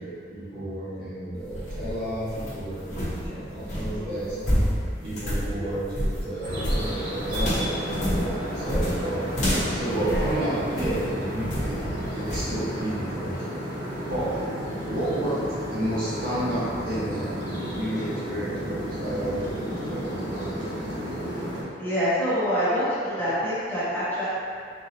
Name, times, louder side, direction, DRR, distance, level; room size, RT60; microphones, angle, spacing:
voice 1, 0.0-4.4 5.0-9.2 9.7-11.8 12.1-13.3 14.1-14.3 14.9-15.4 15.7-21.2, right 1 dB, 55° right, -11 dB, 1.5 m, -31 dB
sound 1, 1.3-11.1 11.5-11.9 12.3-12.5, equal, 45° left, 1.1 m, -28 dB
voice 2, 3.9-4.5 5.5-5.8 10.0-10.3 14.0-14.1 21.8-24.3, equal, 10° left, -13 dB, 1.2 m, -27 dB
sound 2, 6.4-21.6, equal, 90° right, 1.3 m, -32 dB
4.3 x 3.6 x 2.9 m, 2.3 s
head